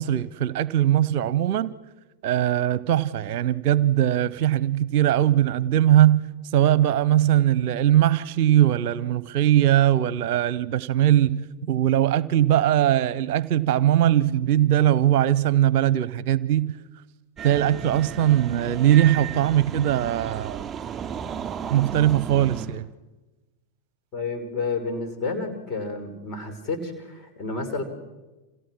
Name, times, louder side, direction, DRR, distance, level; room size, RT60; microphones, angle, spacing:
voice 1, 0.0-1.7 2.2-6.2 6.5-16.7 17.4-20.6 21.7-22.9, right 12 dB, 50° right, 0.8 m, -20 dB
sound 1, 17.4-22.7, right 8 dB, 25° right, 4.2 m, -34 dB
voice 2, 24.1-27.8, left 3 dB, 30° left, 5.8 m, -30 dB
30.0 x 27.5 x 6.3 m
figure-of-eight pair, 90°, 0 cm